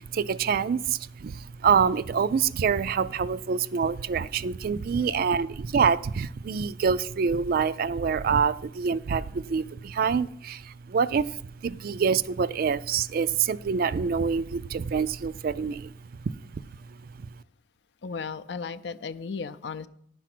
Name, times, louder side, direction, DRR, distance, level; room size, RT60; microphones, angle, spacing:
voice 1, 0.0-15.9, right 6 dB, 55° right, 16 dB, 0.3 m, -26 dB
voice 2, 18.0-19.9, left 5 dB, 65° left, 12 dB, 0.5 m, -35 dB
11.0 x 6.0 x 5.9 m, 0.71 s
head